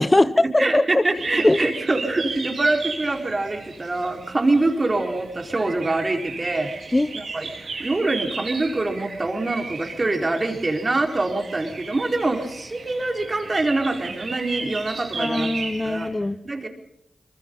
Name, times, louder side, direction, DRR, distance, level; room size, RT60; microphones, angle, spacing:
voice 1, 0.0-1.0 1.4-1.6 6.9-7.1 15.2-16.4, left 2 dB, 25° left, 13 dB, 1.0 m, -20 dB
voice 2, 0.6-6.7 7.1-7.5 7.8-15.5 15.8-16.1 16.4-16.7, right 2 dB, 40° right, 4 dB, 4.4 m, -24 dB
sound 1, 1.1-16.1, right 4 dB, 75° right, 4.5 m, -36 dB
24.5 x 22.5 x 5.6 m, 0.74 s
cardioid pair, 40°, 0 cm